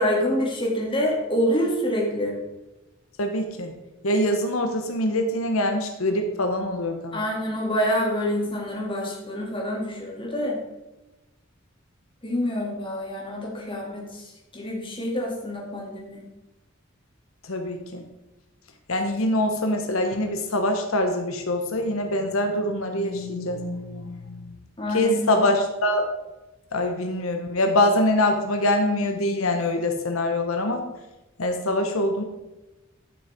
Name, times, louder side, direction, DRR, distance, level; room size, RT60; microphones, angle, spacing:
voice 1, 0.0-2.4 7.1-10.6 12.2-14.2 14.5-16.2 24.8-25.5, equal, 25° left, -2 dB, 2.5 m, -26 dB
voice 2, 3.2-3.7 4.0-7.2 17.5-18.0 18.9-24.3 24.9-26.1 26.7-30.8 31.4-32.2, left 1 dB, 85° left, 5 dB, 1.0 m, -24 dB
11.5 x 6.3 x 4.4 m, 1.0 s
head